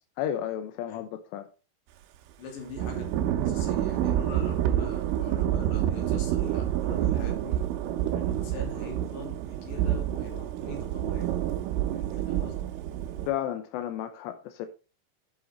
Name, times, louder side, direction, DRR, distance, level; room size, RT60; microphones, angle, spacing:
voice 1, 0.2-1.5 13.3-14.7, left 11 dB, 85° left, 2.5 m, -32 dB
voice 2, 2.4-7.6 8.1-11.4 11.9-12.5, left 3 dB, 65° left, 5.0 m, -43 dB
Thunder / Rain, 2.8-13.3, right 11 dB, 85° right, 3.5 m, -28 dB
11.5 x 6.0 x 3.9 m
omnidirectional pair, 5.7 m